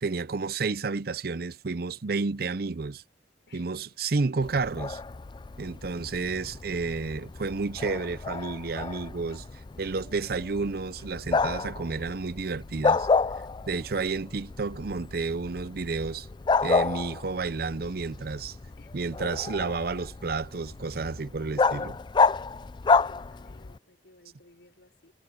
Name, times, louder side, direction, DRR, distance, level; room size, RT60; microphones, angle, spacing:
voice 1, 0.0-3.0 3.5-5.0 5.6-9.4 9.8-13.1 13.7-16.3 16.6-18.6 18.9-22.0, right 4 dB, 60° right, 0.6 m, -31 dB
voice 2, 3.5-4.0 5.9-6.3 18.8-19.2 23.0-25.1, left 2 dB, 90° left, 5.6 m, -58 dB
Bark, 4.4-23.8, left 4 dB, 25° left, 0.4 m, -30 dB
head